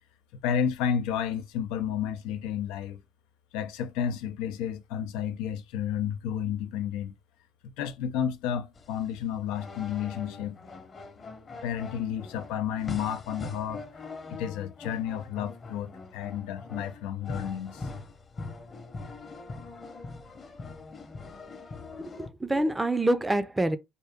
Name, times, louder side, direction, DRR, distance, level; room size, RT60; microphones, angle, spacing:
voice 1, 0.3-3.0 3.5-7.1 7.6-10.7 11.5-13.8 14.3-17.9, left 9 dB, 90° left, 0.6 m, -31 dB
sound 1, 8.8-22.3, left 3 dB, 35° left, 0.9 m, -42 dB
voice 2, 22.0-23.8, right 1 dB, 15° right, 0.5 m, -26 dB
4.5 x 2.7 x 3.5 m
cardioid pair, 105°, 0 cm